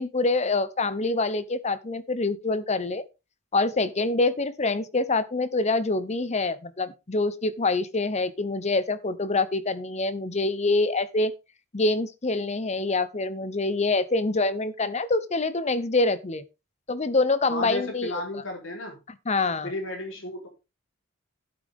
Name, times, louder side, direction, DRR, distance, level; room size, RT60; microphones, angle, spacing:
voice 1, 0.0-3.0 3.5-11.3 11.7-16.4 16.9-18.1 19.3-19.7, left 3 dB, 35° left, 0.8 m, -25 dB
voice 2, 17.5-19.0 19.6-20.5, left 1 dB, 65° left, 3.9 m, -33 dB
12.0 x 8.9 x 3.6 m
head